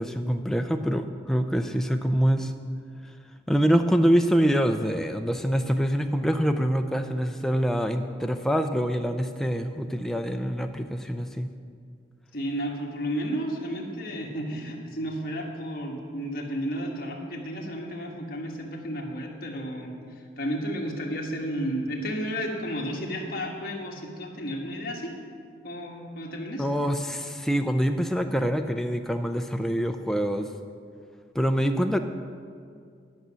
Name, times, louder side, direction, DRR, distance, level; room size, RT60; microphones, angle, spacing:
voice 1, 0.0-2.5 3.5-11.5 26.6-30.5 31.3-32.0, equal, ahead, 5 dB, 0.4 m, -25 dB
voice 2, 12.3-19.9 20.4-25.1 25.6-26.7, equal, 50° left, 0 dB, 1.4 m, -32 dB
10.5 x 6.2 x 6.8 m, 2.3 s
head